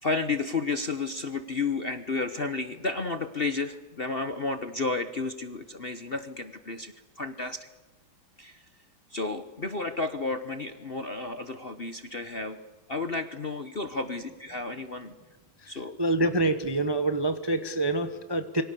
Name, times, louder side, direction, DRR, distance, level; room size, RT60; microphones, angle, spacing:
voice 1, 0.0-7.7 8.4-8.6 9.1-12.6 12.9-15.1 15.7-16.0, left 3 dB, 40° left, 9 dB, 1.0 m, -32 dB
voice 2, 16.0-18.6, right 2 dB, 20° right, 9 dB, 0.7 m, -26 dB
27.5 x 24.0 x 6.8 m, 1.2 s
omnidirectional pair, 2.2 m